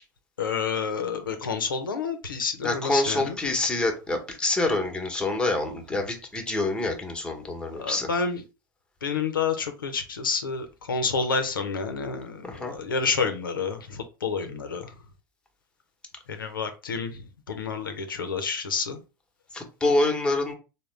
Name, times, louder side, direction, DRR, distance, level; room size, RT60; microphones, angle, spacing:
voice 1, 0.4-3.3 7.8-8.4 9.0-12.3 12.6-13.8 14.2-14.8 16.4-17.1 17.5-19.0, left 5 dB, 85° left, 0.6 m, -28 dB
voice 2, 2.6-8.1 12.4-12.7 19.5-20.5, left 2 dB, 10° left, 1.0 m, -26 dB
3.6 x 2.1 x 3.2 m
hypercardioid pair, 85°, 11 cm